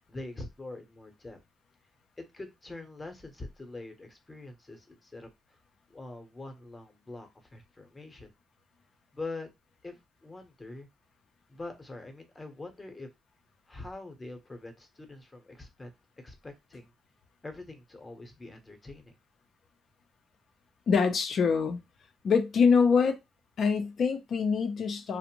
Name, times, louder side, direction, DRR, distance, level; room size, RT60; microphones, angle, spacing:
voice 1, 0.0-1.4 2.2-5.3 5.9-8.3 9.1-9.5 9.8-10.9 11.5-13.1 13.7-16.9 17.4-19.1, left 2 dB, 25° left, 0.8 m, -44 dB
voice 2, 20.9-21.8 22.2-23.2 23.6-25.2, left 5 dB, 55° left, 0.5 m, -24 dB
2.5 x 2.1 x 2.9 m
cardioid pair, 90°, 0 cm